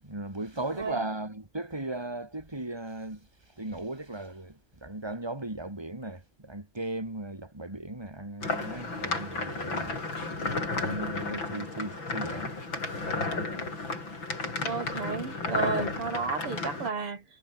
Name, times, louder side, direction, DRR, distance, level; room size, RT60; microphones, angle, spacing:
voice 1, 0.0-9.9 10.5-13.2, right 2 dB, 10° right, 4.2 m, -37 dB
sound 1, 8.4-16.9, left 3 dB, 60° left, 6.5 m, -33 dB
voice 2, 14.6-17.2, right 5 dB, 85° right, 4.3 m, -32 dB
omnidirectional pair, 2.4 m